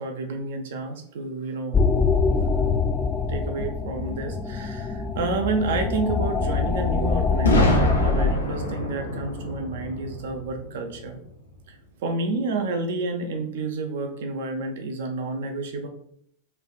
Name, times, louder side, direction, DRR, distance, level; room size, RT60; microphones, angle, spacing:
voice 1, 0.0-1.8 2.4-2.8 3.3-11.2 12.0-15.9, right 3 dB, 55° right, 5 dB, 0.5 m, -30 dB
sound 1, 1.7-8.3, left 4 dB, 20° left, 0.4 m, -24 dB
Boom, 7.4-11.3, equal, 75° left, 0.5 m, -26 dB
3.2 x 2.3 x 2.4 m, 0.65 s
figure-of-eight pair, 90°, 0 cm